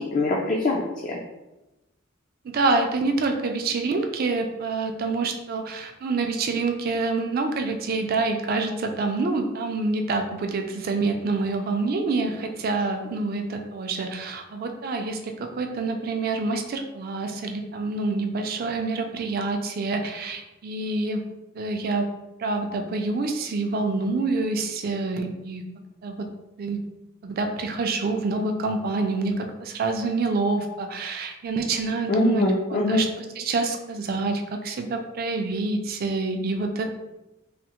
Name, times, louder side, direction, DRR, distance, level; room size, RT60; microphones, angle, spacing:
voice 1, 0.1-1.1 32.1-33.1, left 2 dB, 40° left, -2 dB, 0.3 m, -23 dB
voice 2, 2.4-21.2 21.5-22.1 22.4-25.6 26.0-26.2 26.6-26.8 27.2-32.4 32.7-36.9, right 3 dB, 45° right, 5 dB, 0.3 m, -27 dB
3.3 x 2.0 x 2.9 m, 0.98 s
head